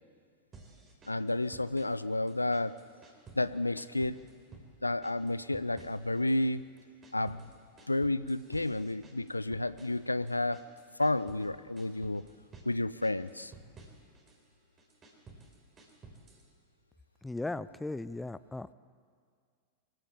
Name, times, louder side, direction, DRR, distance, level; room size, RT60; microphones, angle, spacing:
sound 1, 0.5-2.0 2.3-3.5 3.8-4.7 5.0-6.5 6.8-11.5 11.8-12.7 13.0-14.4 14.8-16.5, right 3 dB, 25° right, 4.0 m, -54 dB
voice 1, 1.1-2.7 3.3-4.2 4.8-6.6 7.1-7.5 7.9-10.6 11.0-12.2 12.7-13.5, left 2 dB, 85° left, 17 dB, 0.5 m, -31 dB
voice 2, 17.2-18.7, left 2 dB, 5° left, 16 dB, 0.5 m, -37 dB
23.0 x 15.5 x 8.7 m, 2.1 s
figure-of-eight pair, 90°, 0 cm